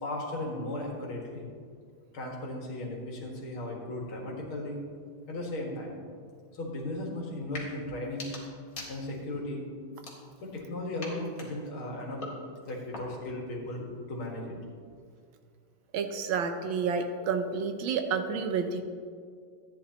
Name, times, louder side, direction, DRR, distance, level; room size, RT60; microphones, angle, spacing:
voice 1, 0.0-1.5 2.1-4.8 5.3-5.9 6.5-8.3 8.9-9.6 10.4-12.2 12.7-14.5, left 1 dB, 75° left, -2 dB, 2.6 m, -36 dB
sound 1, 7.4-7.7 8.0-9.4 9.9-10.6 11.0-13.4, left 2 dB, 45° left, 2.2 m, -44 dB
voice 2, 15.9-18.8, right 5 dB, 75° right, 7 dB, 1.4 m, -30 dB
14.0 x 9.7 x 2.9 m, 2.1 s
omnidirectional pair, 2.3 m